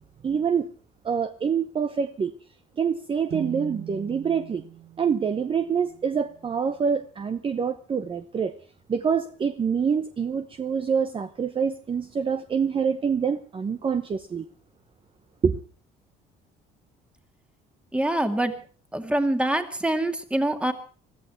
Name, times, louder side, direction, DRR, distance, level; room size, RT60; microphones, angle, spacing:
voice 1, 0.2-0.7 1.0-2.3 2.8-4.6 5.0-8.5 8.9-14.5 15.4-15.6, right 6 dB, 30° right, 0.9 m, -26 dB
sound 1, 3.3-6.9, right 13 dB, 70° right, 1.6 m, -41 dB
voice 2, 17.9-18.6 18.9-20.7, right 1 dB, 5° right, 2.2 m, -25 dB
21.5 x 14.0 x 4.5 m
cardioid pair, 110°, 17 cm